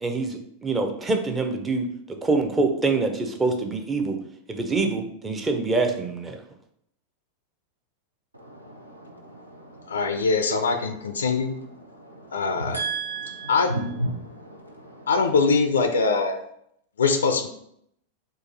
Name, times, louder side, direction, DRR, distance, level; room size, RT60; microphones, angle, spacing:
voice 1, 0.0-4.2 4.5-6.4, right 3 dB, 15° right, 0.6 m, -25 dB
voice 2, 8.4-15.5, right 2 dB, 85° right, 0.8 m, -35 dB
voice 3, 9.9-11.6 12.3-12.8 13.5-13.7 15.1-16.4 17.0-17.5, left 4 dB, 70° left, 0.4 m, -22 dB
3.9 x 2.6 x 3.9 m
figure-of-eight pair, 90°, 0 cm